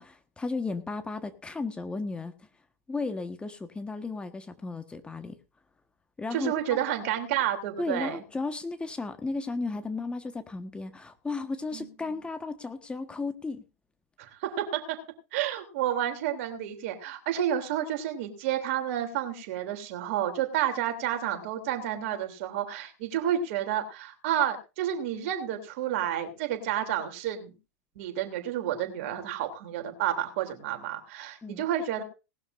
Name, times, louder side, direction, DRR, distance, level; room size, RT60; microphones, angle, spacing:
voice 1, 0.0-2.5 2.9-5.4 6.2-6.5 7.8-13.6 31.4-31.6, left 3 dB, 10° left, 8 dB, 1.5 m, -34 dB
voice 2, 6.3-8.2 11.7-11.8 14.2-15.0 15.3-27.5 27.9-32.0, right 10 dB, 55° right, 6 dB, 3.3 m, -30 dB
19.0 x 12.5 x 2.7 m, 0.30 s
figure-of-eight pair, 95°, 8 cm